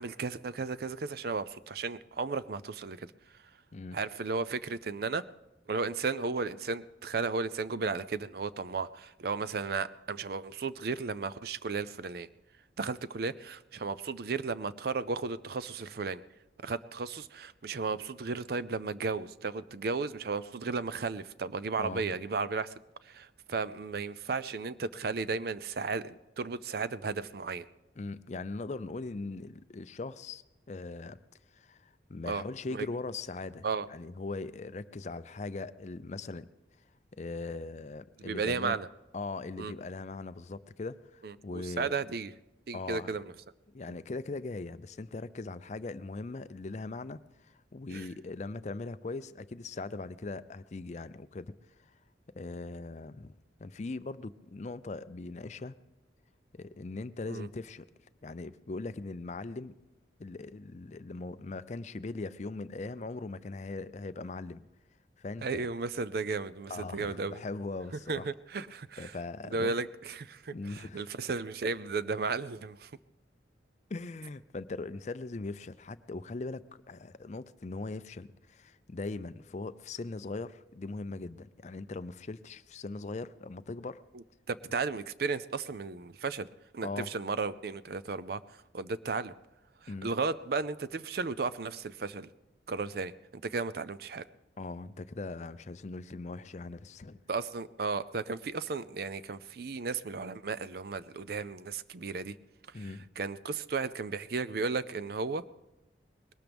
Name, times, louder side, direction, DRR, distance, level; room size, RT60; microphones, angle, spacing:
voice 1, 0.0-3.1 3.9-5.2 5.7-12.3 12.8-16.2 16.6-22.7 23.0-27.7 32.3-32.4 32.7-32.9 33.6-33.9 38.2-38.9 39.6-39.7 41.2-42.3 42.7-43.2 43.9-44.0 47.9-48.1 57.3-57.5 65.4-67.4 68.1-69.1 69.5-72.9 84.5-86.5 86.7-88.4 88.7-89.3 89.8-92.3 92.7-93.1 93.4-94.3 97.3-102.3 102.7-105.4, right 4 dB, 55° right, 16 dB, 0.5 m, -34 dB
voice 2, 21.8-22.2 28.0-31.2 31.5-36.5 37.1-38.8 39.1-41.9 42.7-43.2 43.7-51.9 52.3-53.3 53.6-55.8 56.5-57.8 58.2-59.7 60.2-64.6 65.2-65.7 66.7-68.3 69.0-69.7 70.5-71.1 73.9-84.0 86.8-87.1 89.9-90.1 94.6-97.2 102.7-103.0, left 3 dB, 40° left, 14 dB, 0.4 m, -40 dB
20.5 x 18.5 x 3.5 m, 1.0 s
head